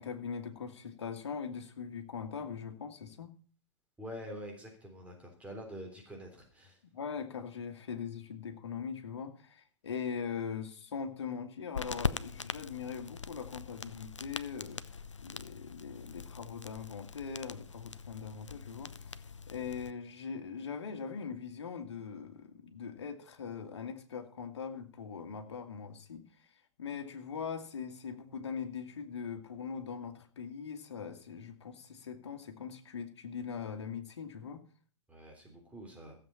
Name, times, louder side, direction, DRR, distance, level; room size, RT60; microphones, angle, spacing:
voice 1, 0.0-3.3 6.9-34.6, left 6 dB, 65° left, 5 dB, 2.0 m, -41 dB
voice 2, 4.0-6.8 35.1-36.2, equal, 10° right, 1 dB, 3.4 m, -46 dB
sound 1, 11.7-19.9, left 5 dB, 80° left, 0.6 m, -41 dB
15.0 x 7.8 x 5.7 m, 0.42 s
figure-of-eight pair, 115°, 15 cm